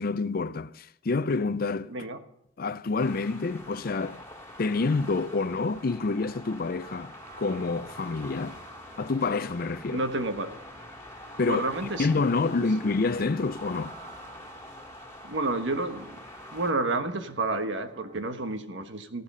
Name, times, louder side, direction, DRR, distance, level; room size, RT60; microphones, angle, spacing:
voice 1, 0.0-1.9 2.6-4.2 4.6-7.1 7.4-8.6 9.0-10.0 11.4-11.7 12.0-14.0, left 3 dB, 55° left, 0.5 m, -28 dB
voice 2, 1.9-2.2 9.9-10.5 11.5-12.2 15.2-16.2 16.5-19.2, right 2 dB, 90° right, 1.4 m, -30 dB
sound 1, 3.0-16.7, left 1 dB, 15° left, 2.3 m, -45 dB
sound 2, 4.4-18.3, right 4 dB, 45° right, 2.3 m, -55 dB
14.5 x 12.0 x 5.6 m
head